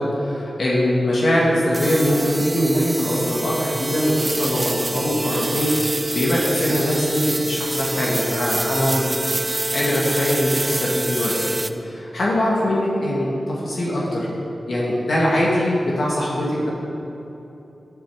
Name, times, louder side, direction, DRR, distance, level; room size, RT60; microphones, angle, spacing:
voice 1, 0.0-9.4 9.7-14.3 14.7-16.7, equal, 75° left, -5 dB, 1.9 m, -22 dB
sound 1, 1.7-11.7, right 1 dB, 30° right, 0.5 m, -26 dB
10.5 x 7.6 x 4.8 m, 2.9 s
cardioid pair, 60°, 0 cm